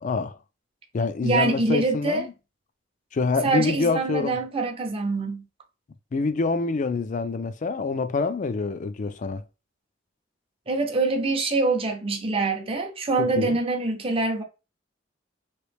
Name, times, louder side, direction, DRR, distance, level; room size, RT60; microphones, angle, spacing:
voice 1, 0.0-0.4 0.9-2.3 3.1-4.4 6.1-9.4 13.2-13.6, left 4 dB, 40° left, 0.4 m, -26 dB
voice 2, 1.2-2.2 3.4-5.4 10.7-14.4, right 3 dB, 30° right, 0.6 m, -25 dB
3.1 x 2.7 x 3.2 m
head